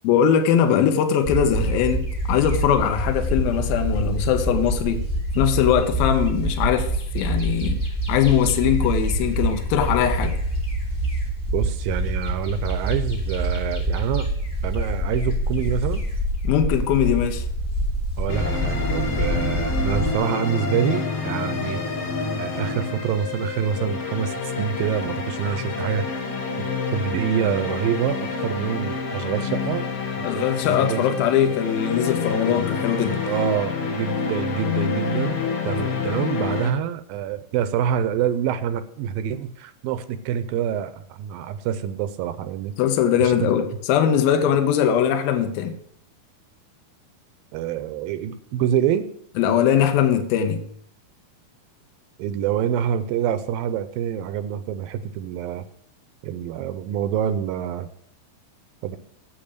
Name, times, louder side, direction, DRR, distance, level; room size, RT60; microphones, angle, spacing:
voice 1, 0.0-5.0 5.4-7.8 8.1-10.4 16.4-17.4 30.2-33.2 42.8-45.8 49.4-50.6, left 9 dB, 75° left, 2.7 m, -21 dB
sound 1, 1.2-20.1, right 1 dB, 20° left, 1.6 m, -26 dB
voice 2, 11.5-14.3 14.6-16.0 18.2-21.8 22.4-26.2 26.9-29.8 30.2-30.3 30.7-31.2 33.3-42.7 43.2-43.5 47.5-49.1 52.2-55.6 56.2-57.9 58.8-59.0, right 9 dB, 80° right, 2.3 m, -26 dB
sound 2, 18.3-36.7, left 5 dB, 55° left, 1.8 m, -28 dB
8.7 x 7.8 x 6.7 m
omnidirectional pair, 4.4 m